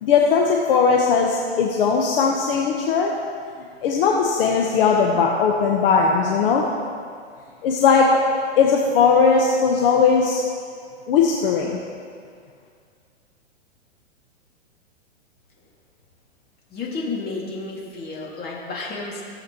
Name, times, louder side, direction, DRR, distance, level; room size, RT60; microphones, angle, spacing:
voice 1, 0.0-3.1 3.8-6.6 7.6-8.1 8.6-10.4 11.1-11.8, left 5 dB, 55° left, 0 dB, 1.0 m, -18 dB
voice 2, 16.7-19.2, left 3 dB, 25° left, -3 dB, 2.1 m, -31 dB
16.0 x 7.2 x 3.0 m, 2.1 s
hypercardioid pair, 120°, 35 cm